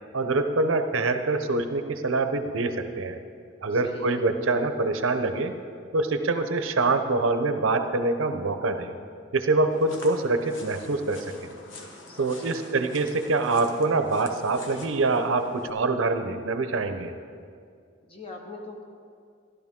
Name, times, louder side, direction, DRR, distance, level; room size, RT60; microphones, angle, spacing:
voice 1, 0.1-3.2 3.6-5.5 5.9-8.9 9.3-11.5 12.2-17.1, right 3 dB, 80° right, 8 dB, 0.7 m, -25 dB
voice 2, 3.7-4.3 12.1-12.7 18.1-18.8, left 1 dB, 30° left, 1 dB, 1.2 m, -42 dB
sound 1, 9.7-15.7, left 2 dB, 75° left, 1.3 m, -46 dB
15.0 x 11.0 x 3.7 m, 2.3 s
head